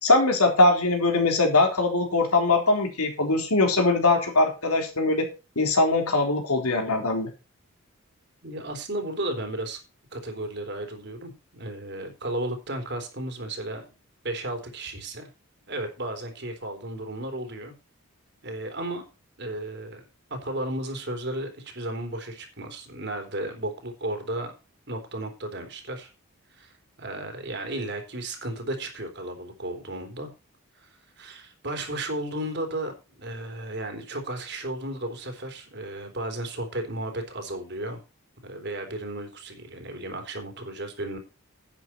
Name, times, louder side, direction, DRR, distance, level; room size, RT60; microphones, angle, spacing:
voice 1, 0.0-5.3 5.6-7.3, left 2 dB, 85° left, 3 dB, 3.8 m, -21 dB
voice 2, 8.4-9.8 10.1-13.9 14.2-15.3 15.7-17.7 18.4-19.0 19.4-20.0 20.3-24.5 24.9-26.1 26.5-30.3 30.8-30.9 31.2-38.0 38.4-41.2, right 1 dB, 50° right, 5 dB, 3.5 m, -34 dB
10.5 x 9.3 x 4.5 m, 0.30 s
head